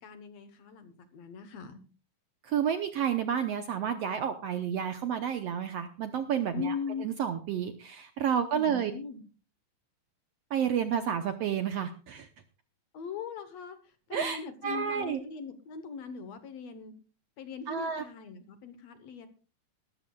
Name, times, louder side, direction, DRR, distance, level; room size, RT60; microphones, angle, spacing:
voice 1, 0.0-1.8 6.5-7.1 8.4-9.2 12.9-13.8 14.1-16.9 17.4-19.3, left 6 dB, 65° left, 10 dB, 2.0 m, -40 dB
voice 2, 2.4-6.7 7.0-8.9 10.5-12.3 14.1-15.2 17.7-18.0, right 8 dB, 70° right, 8 dB, 1.6 m, -30 dB
20.5 x 13.0 x 2.3 m, 0.35 s
omnidirectional pair, 3.7 m